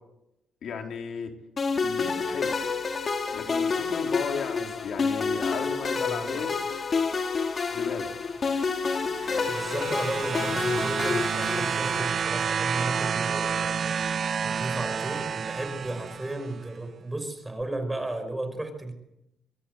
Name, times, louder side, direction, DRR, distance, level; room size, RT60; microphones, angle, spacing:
voice 1, 0.6-1.3 1.8-2.6 3.3-6.5 7.7-8.1, left 6 dB, 65° left, 3 dB, 3.9 m, -34 dB
sound 1, 1.6-12.2, left 4 dB, 40° left, 3.3 m, -29 dB
voice 2, 6.1-6.6 9.5-13.9 14.4-18.9, right 2 dB, 10° right, 8 dB, 5.8 m, -34 dB
sound 2, 8.8-16.6 17.6-17.7, right 7 dB, 50° right, 0.8 m, -30 dB
25.0 x 23.0 x 8.1 m, 0.91 s
cardioid pair, 90°, 0 cm